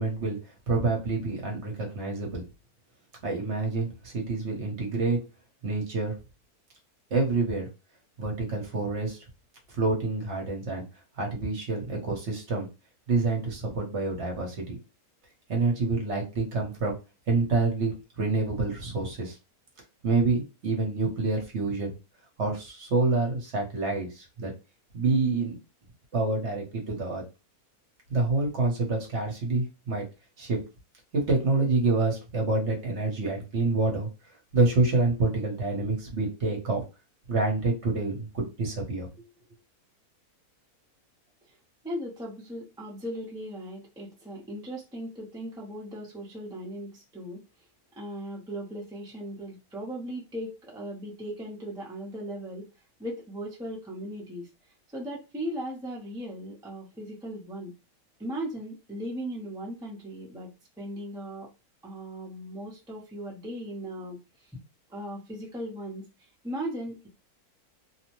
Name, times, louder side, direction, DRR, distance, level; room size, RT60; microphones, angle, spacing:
voice 1, 0.0-2.4 3.2-5.2 5.6-6.2 7.1-7.7 8.2-9.2 9.7-10.8 11.2-12.7 13.1-14.8 15.5-17.0 17.3-19.4 20.0-21.9 22.4-24.5 24.9-25.6 26.1-27.2 28.1-30.1 30.4-30.6 31.1-34.1 34.5-36.8 37.3-39.1, right 3 dB, 55° right, 1 dB, 1.1 m, -27 dB
voice 2, 41.8-47.4 48.0-52.7 53.0-54.5 54.9-57.7 58.2-60.5 60.8-61.5 61.8-64.2 64.5-64.6 64.9-66.1 66.4-67.1, equal, 5° right, -3 dB, 0.4 m, -37 dB
2.8 x 2.0 x 2.9 m, 0.28 s
omnidirectional pair, 1.6 m